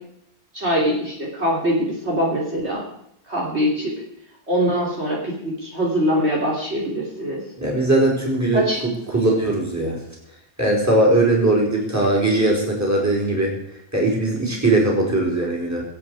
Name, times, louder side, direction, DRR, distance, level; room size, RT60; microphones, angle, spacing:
voice 1, 0.5-2.8 3.3-4.0 4.5-7.4 8.5-8.8, equal, 45° right, -4 dB, 3.5 m, -23 dB
voice 2, 7.6-10.0 10.6-13.5 13.9-15.8, right 2 dB, 10° right, -3 dB, 4.6 m, -20 dB
25.0 x 8.5 x 4.8 m, 0.76 s
omnidirectional pair, 1.5 m